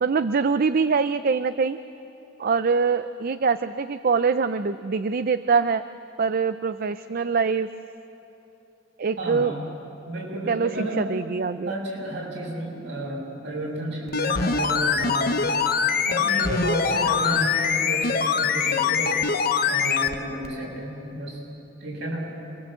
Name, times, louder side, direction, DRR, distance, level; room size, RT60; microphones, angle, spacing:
voice 1, 0.0-1.8 2.4-5.9 6.2-7.7 9.0-9.6 10.5-11.7, right 5 dB, 50° right, 12 dB, 0.5 m, -24 dB
voice 2, 9.2-9.6 10.0-11.1 11.6-15.6 16.1-19.2 19.7-21.4 21.8-22.4, right 1 dB, 65° right, -3 dB, 7.5 m, -31 dB
sound 1, 14.1-20.2 20.4-20.5, left 6 dB, 50° left, 1.0 m, -23 dB
27.5 x 22.0 x 7.7 m, 3.0 s
head